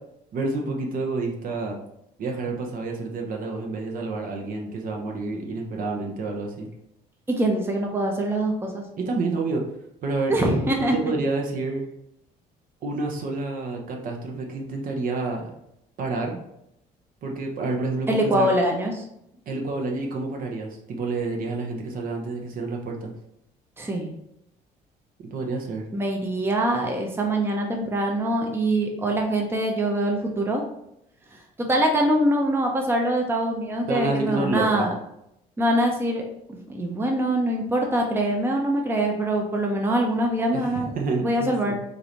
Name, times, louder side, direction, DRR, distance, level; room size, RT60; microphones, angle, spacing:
voice 1, 0.3-1.8 2.2-6.7 9.0-9.6 10.0-11.8 12.8-15.5 16.0-16.4 17.2-18.5 19.5-23.1 25.2-25.8 33.9-34.9 40.5-41.8, right 3 dB, 55° right, 1 dB, 0.8 m, -29 dB
voice 2, 7.3-8.8 10.3-11.0 18.1-19.0 23.8-24.1 25.9-30.6 31.6-34.9 35.6-36.2 36.5-40.9 41.2-41.8, right 1 dB, 15° right, 1 dB, 0.6 m, -24 dB
4.8 x 2.6 x 2.9 m, 0.79 s
cardioid pair, 110°, 17 cm